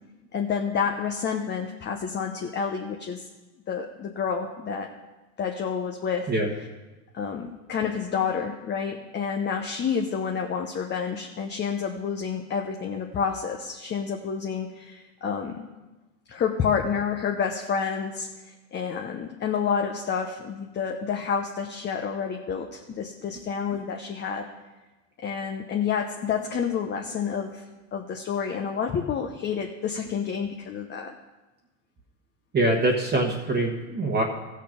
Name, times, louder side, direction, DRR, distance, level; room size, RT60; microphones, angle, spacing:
voice 1, 0.3-3.3 3.7-4.9 5.4-6.3 7.1-15.6 16.3-24.5 25.2-27.6 27.9-31.1, left 6 dB, 25° left, 3 dB, 0.9 m, -29 dB
voice 2, 32.5-34.2, right 2 dB, 25° right, -1 dB, 1.4 m, -24 dB
15.0 x 6.6 x 5.1 m, 1.1 s
hypercardioid pair, 100°, 39 cm